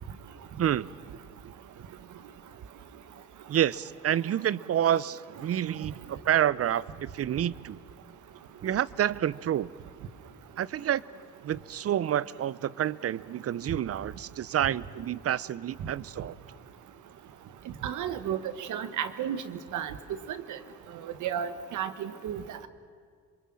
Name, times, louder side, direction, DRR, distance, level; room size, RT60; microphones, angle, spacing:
voice 1, 0.6-0.9 3.5-7.8 8.6-9.7 10.6-11.0 11.4-16.4, right 10 dB, 50° right, 20 dB, 0.7 m, -28 dB
voice 2, 17.8-19.4 19.7-19.9 20.3-20.6 21.0-22.4, right 9 dB, 80° right, 11 dB, 1.5 m, -33 dB
27.0 x 23.0 x 7.7 m, 2.2 s
cardioid pair, 90°, 30 cm